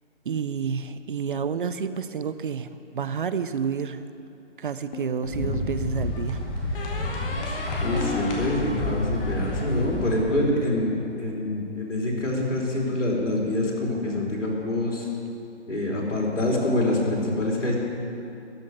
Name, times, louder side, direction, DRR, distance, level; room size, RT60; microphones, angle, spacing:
voice 1, 0.3-4.0 4.6-6.4, right 6 dB, 45° right, 12 dB, 0.5 m, -29 dB
sound 1, 4.9-5.8 6.7-10.1, left 1 dB, 50° left, 1.7 m, -34 dB
sound 2, 5.2-10.2, left 2 dB, 10° left, 0.6 m, -30 dB
voice 2, 7.8-15.1 15.7-17.8, left 1 dB, 85° left, -2 dB, 3.5 m, -26 dB
13.0 x 6.4 x 9.0 m, 2.7 s
hypercardioid pair, 150°, 36 cm